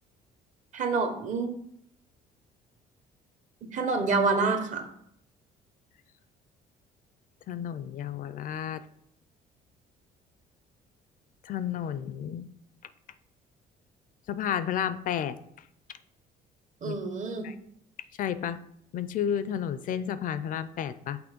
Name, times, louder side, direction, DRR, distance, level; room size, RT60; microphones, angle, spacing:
voice 1, 0.7-1.6 3.7-4.9 16.8-17.5, right 4 dB, 45° right, 7 dB, 1.0 m, -27 dB
voice 2, 7.5-8.9 11.4-12.5 14.3-15.4 16.8-17.0 17.4-17.5 18.2-18.6 18.9-21.2, left 9 dB, 55° left, 14 dB, 0.4 m, -31 dB
6.1 x 3.0 x 5.2 m, 0.71 s
cardioid pair, 110°, 17 cm